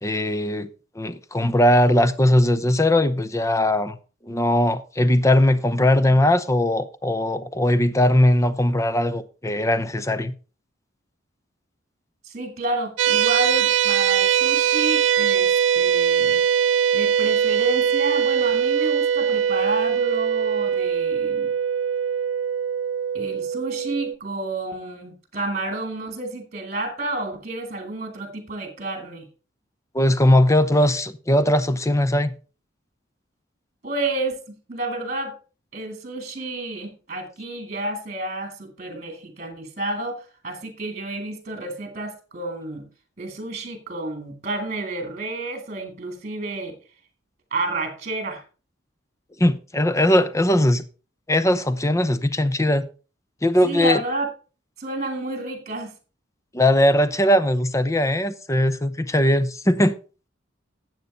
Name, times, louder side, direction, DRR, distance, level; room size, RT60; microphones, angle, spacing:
voice 1, 0.0-0.7 1.0-4.0 4.2-10.3 29.9-32.4 49.4-50.8 51.3-52.8 53.4-54.0 56.5-60.0, left 1 dB, 15° left, 0.7 m, -19 dB
voice 2, 12.2-16.4 16.9-21.5 23.1-29.3 33.8-35.4 35.7-42.9 43.2-46.8 47.5-48.4 53.6-54.3 54.8-55.9, right 2 dB, 35° right, 2.4 m, -30 dB
sound 1, 13.0-24.1, right 8 dB, 65° right, 0.4 m, -21 dB
11.5 x 8.0 x 4.0 m
head